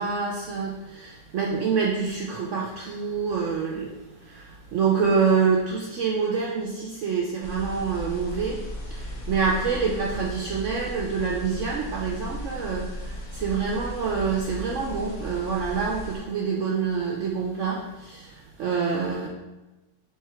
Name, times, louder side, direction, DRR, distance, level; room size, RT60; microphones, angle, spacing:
voice 1, 0.0-8.6 8.9-19.3, right 5 dB, 75° right, -2 dB, 0.7 m, -26 dB
sound 1, 7.4-16.2, equal, 60° left, 1.2 m, -36 dB
3.4 x 3.3 x 4.4 m, 1.1 s
omnidirectional pair, 1.8 m